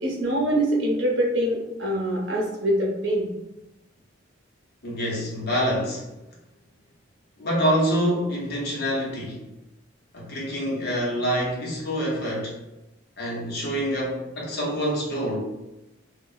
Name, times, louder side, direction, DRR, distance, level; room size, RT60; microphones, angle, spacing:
voice 1, 0.0-3.2, right 1 dB, 65° right, -2 dB, 0.8 m, -24 dB
voice 2, 4.8-6.1 7.4-9.4 10.1-12.6 13.2-15.4, equal, 55° left, -4 dB, 0.9 m, -26 dB
2.3 x 2.1 x 3.8 m, 0.95 s
head